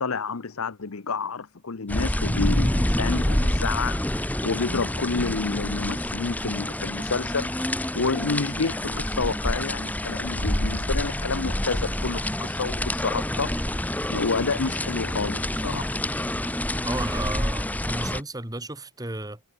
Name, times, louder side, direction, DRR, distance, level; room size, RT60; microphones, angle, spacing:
voice 1, 0.0-13.8 14.1-15.9, left 4 dB, 65° left, 0.9 m, -29 dB
sound 1, 1.9-18.2, left 1 dB, 5° left, 1.1 m, -27 dB
voice 2, 16.8-19.4, right 2 dB, 15° right, 2.0 m, -33 dB
head